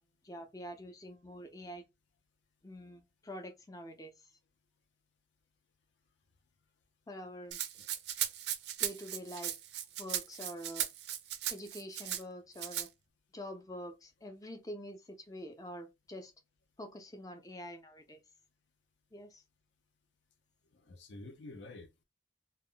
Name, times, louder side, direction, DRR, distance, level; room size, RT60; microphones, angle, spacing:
voice 1, 0.2-1.8 2.6-4.1 7.1-7.6 8.8-9.5 10.0-10.9 11.5-12.9 13.3-16.3 16.8-18.2 19.1-19.4, equal, 20° left, 0.4 m, -46 dB
Rattle (instrument), 7.5-12.2 12.6-12.9, right 11 dB, 65° right, 0.4 m, -37 dB
voice 2, 20.7-22.0, left 2 dB, 80° left, 0.5 m, -49 dB
2.2 x 2.0 x 3.7 m
head